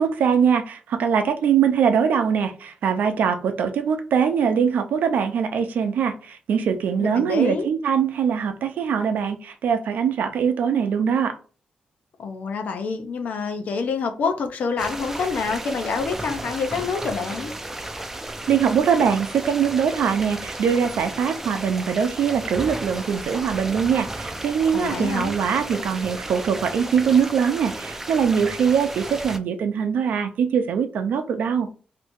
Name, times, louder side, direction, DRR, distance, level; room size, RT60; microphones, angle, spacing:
voice 1, 0.0-11.4 18.5-31.7, right 7 dB, 80° right, 0.6 m, -22 dB
voice 2, 7.0-7.7 12.2-17.5 24.7-25.3, left 5 dB, 70° left, 0.7 m, -27 dB
sound 1, 14.8-29.4, right 1 dB, 10° right, 0.4 m, -34 dB
2.8 x 2.6 x 3.6 m
wide cardioid pair, 135°, 3 cm